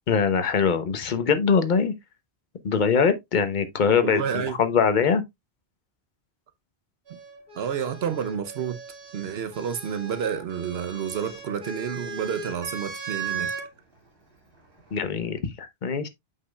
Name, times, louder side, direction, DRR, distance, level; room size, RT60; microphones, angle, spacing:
voice 1, 0.1-1.9 2.6-5.2 14.9-16.1, left 6 dB, 50° left, 0.9 m, -22 dB
voice 2, 4.0-4.6 7.1-7.2 7.5-8.8 9.1-13.5, right 8 dB, 75° right, 0.9 m, -30 dB
sound 1, 7.1-13.7 14.8-15.4, right 5 dB, 60° right, 2.3 m, -37 dB
8.2 x 5.6 x 2.2 m
omnidirectional pair, 1.1 m